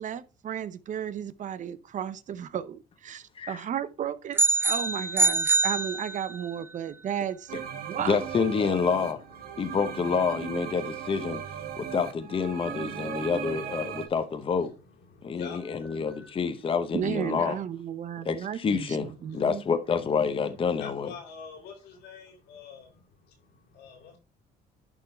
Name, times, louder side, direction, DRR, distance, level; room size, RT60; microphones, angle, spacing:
voice 1, 0.0-8.2 8.6-8.8 16.9-19.6, right 9 dB, 50° right, 0.7 m, -34 dB
sound 1, 4.4-6.5, right 3 dB, 15° right, 0.3 m, -25 dB
sound 2, 7.5-14.1, right 8 dB, 65° right, 1.4 m, -37 dB
voice 2, 8.1-9.2 9.6-11.4 11.8-14.7 15.2-17.6 18.2-21.1, left 5 dB, 30° left, 0.8 m, -28 dB
voice 3, 11.0-12.0 12.5-13.1 13.9-14.0 14.8-16.7 19.0-19.4 20.7-23.0 23.3-24.2, left 6 dB, 85° left, 3.2 m, -48 dB
11.0 x 3.7 x 4.3 m
cardioid pair, 110°, 17 cm